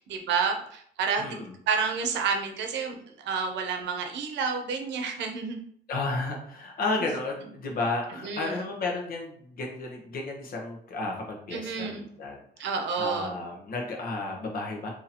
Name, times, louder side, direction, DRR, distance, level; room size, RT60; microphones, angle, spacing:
voice 1, 0.0-5.6 8.2-8.7 11.5-12.0 12.6-13.3, right 5 dB, 85° right, 4 dB, 0.7 m, -30 dB
voice 2, 1.2-1.6 5.9-14.9, left 3 dB, 55° left, 1 dB, 1.0 m, -33 dB
2.9 x 2.8 x 4.1 m, 0.64 s
cardioid pair, 155°, 18 cm